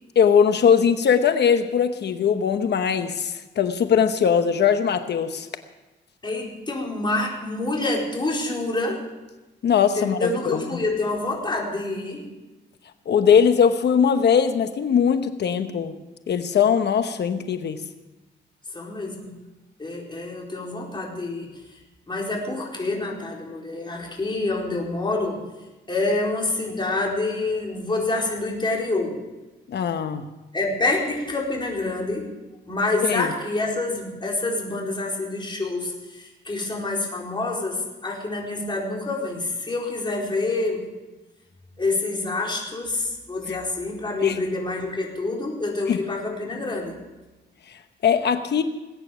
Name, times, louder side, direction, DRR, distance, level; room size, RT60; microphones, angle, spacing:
voice 1, 0.2-5.5 9.6-10.8 13.1-15.9 16.3-17.8 29.7-30.2 33.0-33.3 44.2-44.4 45.9-46.0 48.0-48.6, left 7 dB, 65° left, 9 dB, 1.0 m, -20 dB
voice 2, 6.2-9.1 10.0-12.2 18.7-19.3 19.8-21.5 22.1-25.4 25.9-29.2 30.5-32.3 32.7-40.8 41.8-46.9, left 2 dB, 25° left, -2 dB, 4.3 m, -27 dB
19.5 x 9.2 x 7.2 m, 1.1 s
cardioid pair, 110°, 18 cm